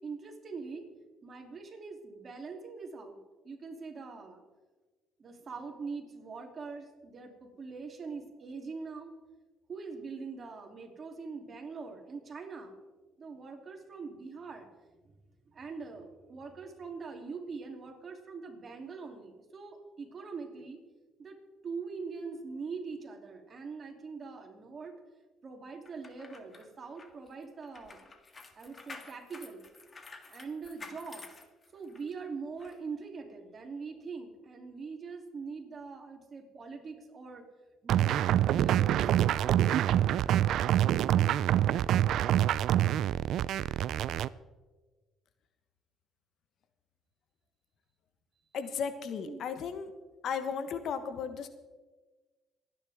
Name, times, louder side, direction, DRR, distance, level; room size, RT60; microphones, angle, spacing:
voice 1, 0.0-0.9 1.2-3.2 3.4-4.4 5.2-9.1 9.7-12.8 13.2-14.7 15.0-15.1 15.4-20.8 21.2-21.4 21.6-24.9 25.4-28.1 28.5-29.6 30.2-31.4 31.7-37.4 37.8-38.1 38.5-39.6 41.1-41.4 49.3-49.4, right 4 dB, 40° right, 2 dB, 3.0 m, -43 dB
sound 1, 25.9-32.1 32.6-32.8, left 3 dB, 35° left, 1.8 m, -50 dB
sound 2, 37.9-44.3, right 11 dB, 70° right, 0.4 m, -26 dB
voice 2, 48.5-49.9 50.2-51.5, left 6 dB, 65° left, 10 dB, 1.2 m, -35 dB
27.0 x 9.9 x 3.6 m, 1.3 s
supercardioid pair, 80°, 0 cm